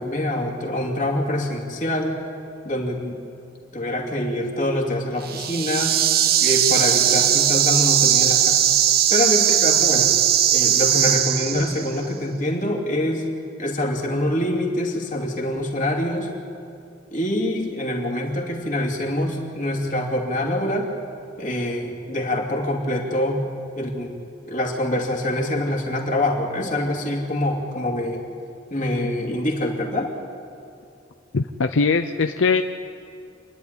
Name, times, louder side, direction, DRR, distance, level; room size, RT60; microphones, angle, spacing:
voice 1, 0.0-2.1 2.6-3.2 3.7-5.9 6.4-8.6 9.1-10.1 10.5-13.3 13.6-16.3 17.1-20.9 21.4-23.4 23.8-28.2 28.7-30.1, left 1 dB, 45° left, 0 dB, 2.7 m, -25 dB
sound 1, 5.2-12.0, right 10 dB, 55° right, 0.9 m, -19 dB
voice 2, 31.3-32.6, left 4 dB, 90° left, 7 dB, 0.6 m, -21 dB
27.5 x 11.0 x 9.9 m, 2.5 s
head